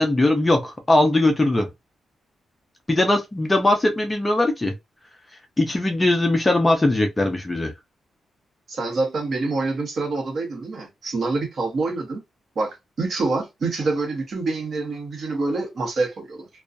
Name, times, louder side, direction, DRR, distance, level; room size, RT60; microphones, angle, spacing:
voice 1, 0.0-1.7 2.9-4.7 5.6-7.7, left 2 dB, 15° left, 0.4 m, -20 dB
voice 2, 8.7-12.2 12.6-16.5, right 3 dB, 40° right, 0.9 m, -26 dB
2.4 x 2.2 x 2.5 m
wide cardioid pair, 170°, 0 cm